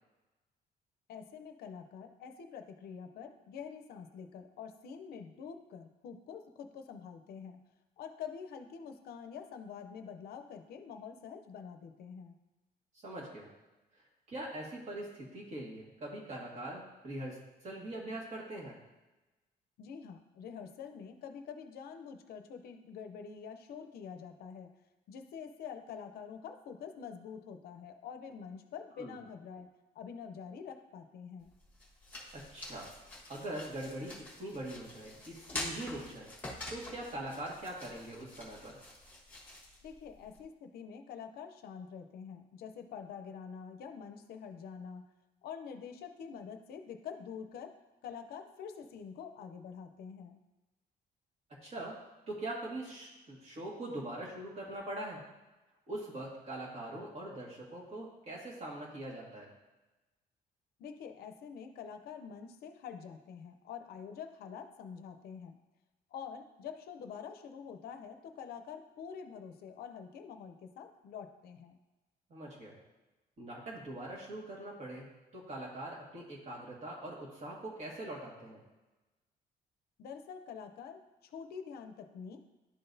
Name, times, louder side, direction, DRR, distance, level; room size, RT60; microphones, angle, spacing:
voice 1, 1.1-7.6 8.0-12.3 19.8-24.7 25.1-29.7 29.9-31.5 39.8-45.0 45.4-47.7 48.0-50.4 60.8-65.6 66.1-71.8 80.0-82.4, left 7 dB, 70° left, 7 dB, 0.6 m, -46 dB
voice 2, 13.0-13.5 14.3-17.4 17.6-18.8 29.0-29.2 32.5-32.9 33.3-36.3 36.7-38.7 51.6-51.9 52.3-55.2 55.9-59.5 72.3-72.8 73.4-75.1 75.3-78.6, right 1 dB, 40° right, -4 dB, 1.8 m, -42 dB
sound 1, 31.4-40.4, left 2 dB, 10° left, 1.4 m, -46 dB
11.0 x 4.0 x 2.6 m, 1.1 s
cardioid pair, 165°, 17 cm